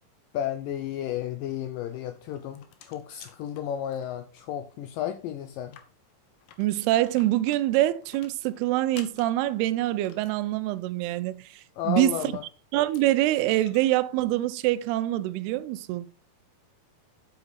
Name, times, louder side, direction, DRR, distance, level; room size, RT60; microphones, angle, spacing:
voice 1, 0.3-5.8 11.8-12.4, left 10 dB, 90° left, 2.0 m, -33 dB
sound 1, 2.1-4.4 4.7-4.8 5.1-5.2 5.6-10.4 12.2-12.3 12.8-13.8, left 9 dB, 70° left, 2.5 m, -51 dB
voice 2, 6.6-12.3 12.7-16.1, right 15 dB, 90° right, 2.6 m, -25 dB
8.1 x 6.8 x 4.2 m
omnidirectional pair, 4.5 m